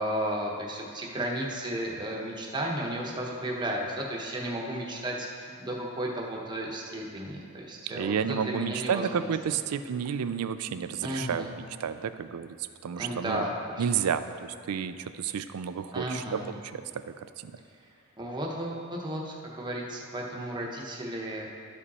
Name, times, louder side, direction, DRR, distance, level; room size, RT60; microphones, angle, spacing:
voice 1, 0.0-9.3 11.0-11.5 13.0-13.8 15.9-16.4 18.2-21.5, right 1 dB, 20° right, -2 dB, 1.0 m, -33 dB
voice 2, 7.9-13.5 13.8-17.5, right 7 dB, 85° right, 12 dB, 0.4 m, -31 dB
12.0 x 5.2 x 4.2 m, 2.4 s
head